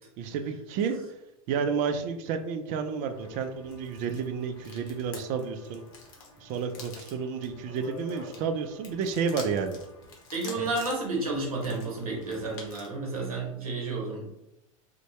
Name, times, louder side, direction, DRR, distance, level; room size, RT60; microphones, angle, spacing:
voice 1, 0.2-1.0 1.5-5.8 6.4-9.8 10.6-10.7, right 6 dB, 45° right, 8 dB, 0.4 m, -31 dB
sound 1, 3.1-13.0, left 3 dB, 55° left, 0.8 m, -47 dB
voice 2, 10.3-14.3, right 3 dB, 85° right, -1 dB, 0.7 m, -31 dB
2.7 x 2.1 x 3.0 m, 0.88 s
hypercardioid pair, 90°, 18 cm